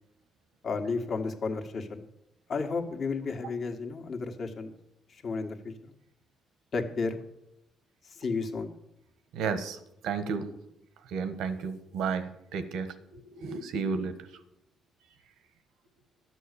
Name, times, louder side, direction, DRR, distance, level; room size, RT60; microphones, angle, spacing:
voice 1, 0.6-2.0 2.5-4.7 5.1-5.9 6.7-7.2 8.1-8.7, left 4 dB, 55° left, 4 dB, 1.7 m, -32 dB
voice 2, 9.3-9.8 10.0-10.5 11.1-12.9 13.3-14.1, right 5 dB, 85° right, 11 dB, 1.2 m, -32 dB
12.0 x 7.6 x 6.8 m, 0.85 s
cardioid pair, 90°, 0 cm